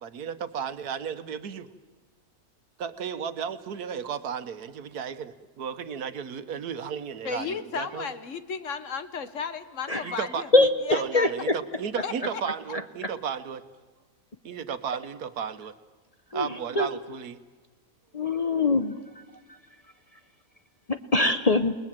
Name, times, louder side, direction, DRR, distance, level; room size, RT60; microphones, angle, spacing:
voice 1, 0.0-1.7 2.8-8.0 10.0-13.6 14.4-15.7 16.3-17.4, right 7 dB, 85° right, 11 dB, 1.5 m, -34 dB
voice 2, 7.2-10.5 10.9-11.3 12.0-12.4, left 6 dB, 55° left, 11 dB, 1.4 m, -34 dB
voice 3, 10.5-11.6 13.0-13.1 16.3-16.9 18.1-19.0 20.9-21.7, left 2 dB, 30° left, 9 dB, 0.8 m, -23 dB
29.0 x 20.0 x 7.5 m, 1.3 s
omnidirectional pair, 1.6 m